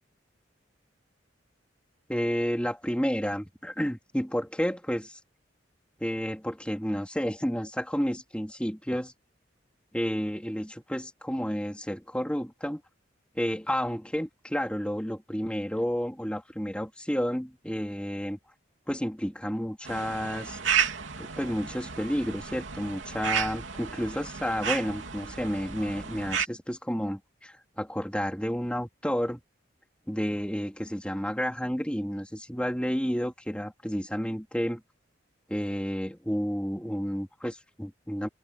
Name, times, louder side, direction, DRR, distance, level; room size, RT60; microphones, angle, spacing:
voice 1, 2.1-5.2 6.0-9.1 9.9-12.8 13.3-18.4 18.9-20.6 21.2-29.4 30.1-34.8 35.5-38.3, equal, 5° left, 3.3 m, -31 dB
sound 1, 19.9-26.5, right 7 dB, 90° right, 3.1 m, -32 dB
head